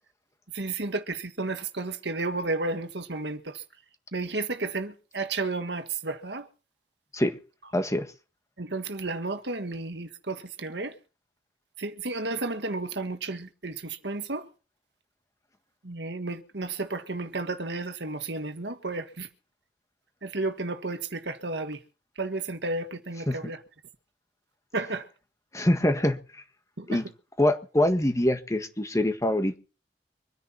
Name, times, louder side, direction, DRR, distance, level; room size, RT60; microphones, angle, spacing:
voice 1, 0.5-3.4 4.1-6.4 8.6-10.9 11.8-14.5 15.8-19.3 20.2-21.8 22.2-23.6 24.7-25.0 26.8-27.0, right 3 dB, 75° right, 1.7 m, -32 dB
voice 2, 7.7-8.1 23.3-23.4 25.5-26.2 26.9-27.1 27.4-29.6, left 1 dB, 20° left, 1.6 m, -24 dB
25.0 x 10.0 x 4.3 m
head